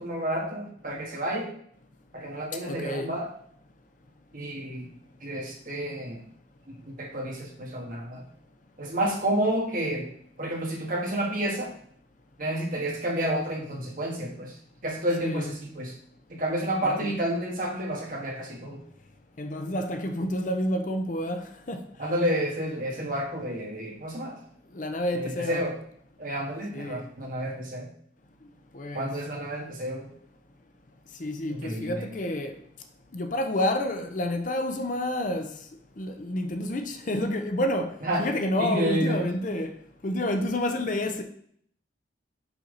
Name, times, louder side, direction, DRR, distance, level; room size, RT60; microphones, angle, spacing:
voice 1, 0.0-1.5 2.1-3.3 4.3-4.9 5.2-6.2 6.7-8.3 8.8-10.1 10.4-11.7 12.4-14.6 14.8-15.9 16.3-18.8 22.0-24.4 25.1-25.8 26.2-27.9 28.9-30.1 31.5-32.1 38.0-38.3 38.6-39.2, right 1 dB, 45° right, 1.7 m, -30 dB
voice 2, 2.7-3.1 15.2-15.5 16.8-17.1 19.4-21.8 24.7-25.6 26.7-27.0 28.7-29.1 31.2-32.6 33.1-35.5 36.0-39.7 40.0-41.2, left 1 dB, 40° left, 0.6 m, -29 dB
5.8 x 5.7 x 3.9 m
head